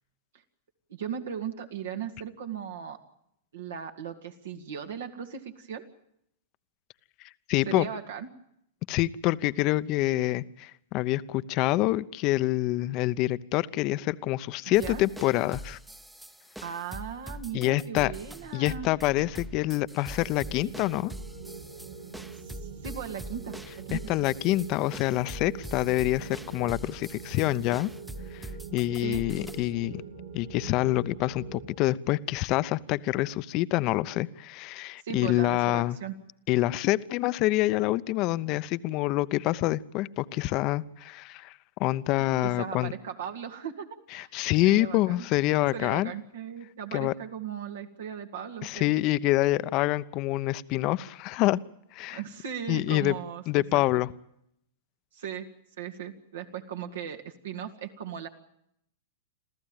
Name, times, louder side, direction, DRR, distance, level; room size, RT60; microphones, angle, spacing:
voice 1, 0.9-3.0 3.5-5.8 7.7-8.3 14.7-15.0 16.6-18.9 22.4-24.1 29.0-29.2 35.0-36.1 42.4-43.9 44.1-44.3 44.6-45.3 45.7-49.1 52.1-53.8 55.1-55.5 55.8-58.3, right 8 dB, 70° right, 5 dB, 2.2 m, -37 dB
voice 2, 7.5-7.8 8.9-15.8 17.5-18.1 18.5-21.1 23.9-27.9 28.3-28.5 28.7-30.0 30.3-36.0 36.5-41.5 41.8-42.9 44.1-46.1 46.9-47.1 48.6-51.6 51.9-52.2 52.7-53.1 53.5-54.1, left 17 dB, 40° left, 16 dB, 0.9 m, -26 dB
sound 1, 14.7-29.7, right 1 dB, 5° right, 1.0 m, -44 dB
sound 2, 20.2-31.8, right 5 dB, 90° right, 6.9 m, -44 dB
27.0 x 14.5 x 9.0 m, 0.75 s
hypercardioid pair, 110°, 0 cm